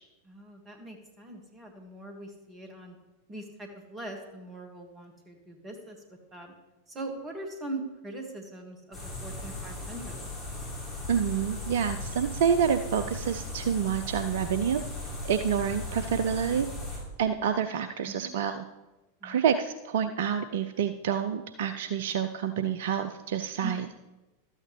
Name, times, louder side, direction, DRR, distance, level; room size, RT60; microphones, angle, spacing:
voice 1, 0.3-3.0 3.3-6.0 6.3-6.5 6.9-10.3 18.2-18.3 19.2-19.4 23.6-23.8, right 2 dB, 20° right, 3 dB, 1.8 m, -41 dB
sound 1, 8.9-17.0, left 2 dB, 15° left, 3.5 m, -37 dB
voice 2, 11.1-14.8 15.2-16.7 17.2-18.6 19.2-23.9, right 8 dB, 55° right, 10 dB, 0.4 m, -28 dB
12.5 x 8.6 x 3.2 m, 1.1 s
figure-of-eight pair, 90°, 0 cm